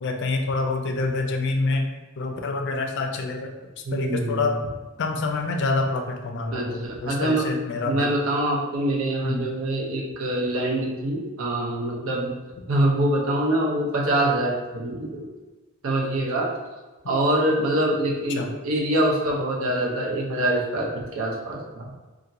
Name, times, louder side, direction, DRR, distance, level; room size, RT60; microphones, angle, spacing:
voice 1, 0.0-1.9 2.2-3.5 3.9-4.5 5.0-8.1 9.2-9.4 18.4-18.5, left 3 dB, 60° left, 3 dB, 0.4 m, -26 dB
voice 2, 3.8-4.6 6.5-7.5 7.8-12.3 12.7-15.3 15.8-16.5 17.1-21.9, right 1 dB, 80° right, -2 dB, 0.6 m, -24 dB
2.8 x 2.5 x 2.6 m, 1.2 s
head